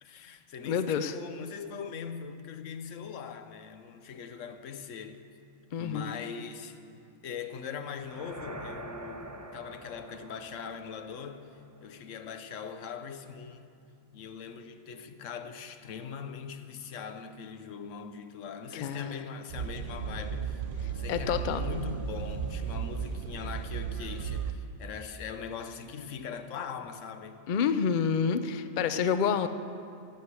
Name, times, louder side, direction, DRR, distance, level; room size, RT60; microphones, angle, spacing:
voice 1, 0.0-5.2 5.8-6.8 7.2-13.7 14.1-20.6 20.9-27.5, left 6 dB, 85° left, 1.1 m, -41 dB
voice 2, 0.6-1.1 5.7-6.1 18.7-19.1 21.1-21.6 27.5-29.5, left 7 dB, 50° left, 0.6 m, -28 dB
sound 1, 7.8-11.9, right 1 dB, 20° right, 0.6 m, -45 dB
sound 2, 19.5-24.5, right 6 dB, 55° right, 0.7 m, -35 dB
17.0 x 6.5 x 8.2 m
omnidirectional pair, 1.3 m